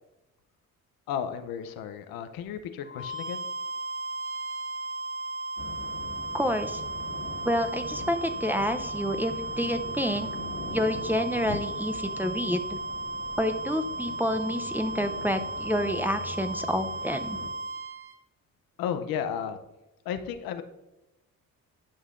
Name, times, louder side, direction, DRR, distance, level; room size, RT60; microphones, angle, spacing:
voice 1, 1.1-3.4 11.5-11.6 18.8-19.6 20.0-20.6, left 8 dB, 90° left, 9 dB, 0.7 m, -33 dB
sound 1, 2.8-18.1, right 2 dB, 40° right, 1.5 m, -35 dB
sound 2, 5.6-17.5, left 2 dB, 35° left, 1.7 m, -43 dB
voice 2, 6.3-6.8 7.4-10.3 10.7-12.8 13.4-17.4, equal, 5° right, 6 dB, 0.5 m, -28 dB
11.5 x 5.5 x 2.5 m, 1.0 s
cardioid pair, 80°, 34 cm